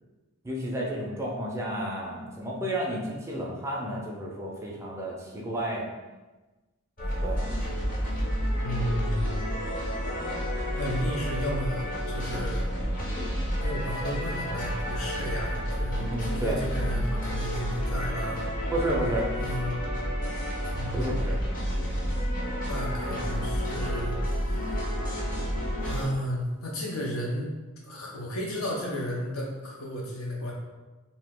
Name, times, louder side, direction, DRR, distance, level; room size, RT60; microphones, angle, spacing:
voice 1, 0.4-5.9 7.2-7.5 16.1-16.6 18.7-19.3 20.9-21.4, right 1 dB, 15° right, -3 dB, 0.4 m, -31 dB
sound 1, 7.0-26.0, equal, 40° left, 0.8 m, -30 dB
voice 2, 8.6-9.4 10.8-12.7 13.6-18.4 19.4-19.8 20.6-21.2 22.7-24.8 25.8-27.5 27.8-30.5, equal, 70° left, -2 dB, 0.8 m, -33 dB
2.8 x 2.7 x 3.6 m, 1.2 s
head